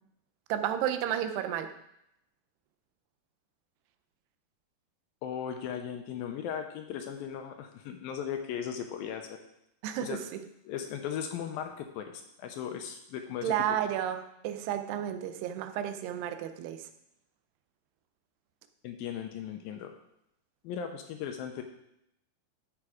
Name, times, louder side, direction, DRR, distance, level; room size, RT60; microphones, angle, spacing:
voice 1, 0.5-1.7 9.8-10.2 13.4-16.9, right 10 dB, 85° right, 9 dB, 2.8 m, -32 dB
voice 2, 5.2-9.4 10.0-10.2 10.7-13.8 18.8-19.9 20.6-21.6, left 8 dB, 75° left, 5 dB, 2.3 m, -37 dB
12.5 x 6.1 x 4.9 m, 0.79 s
omnidirectional pair, 4.6 m